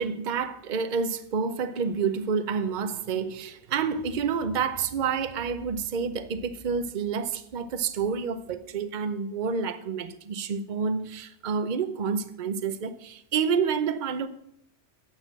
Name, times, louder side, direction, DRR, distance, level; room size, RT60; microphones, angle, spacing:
voice 1, 0.0-14.3, right 6 dB, 45° right, 0.8 m, -29 dB
10.0 x 6.8 x 7.4 m
omnidirectional pair, 1.2 m